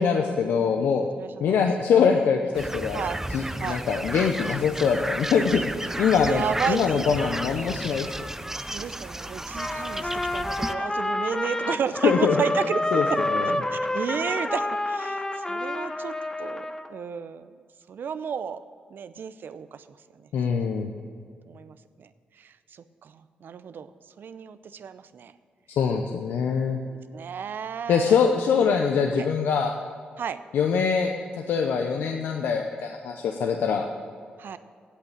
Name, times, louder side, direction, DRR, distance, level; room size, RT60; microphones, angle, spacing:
voice 1, 0.0-1.0 1.4-8.1 12.0-12.4 12.9-13.5 20.3-20.9 25.8-26.8 27.9-29.7 30.5-31.1 31.5-33.9, left 6 dB, 85° left, 3 dB, 0.7 m, -23 dB
voice 2, 1.0-1.7 2.1-2.3 2.9-3.2 3.6-3.8 6.3-7.3 8.7-12.8 13.1-13.2 13.7-16.1 16.4-17.5 17.9-18.6 18.9-19.8 21.4-22.1 22.4-23.9 24.2-25.3 26.8-28.2 29.1-29.3 30.2-30.4 34.4-34.6, right 7 dB, 70° right, 13 dB, 0.5 m, -32 dB
sound 1, 2.5-10.7, right 1 dB, 10° right, 0.5 m, -33 dB
Trumpet, 9.5-16.9, left 1 dB, 15° left, 0.8 m, -28 dB
8.3 x 8.3 x 8.8 m, 2.1 s
supercardioid pair, 50°, 4 cm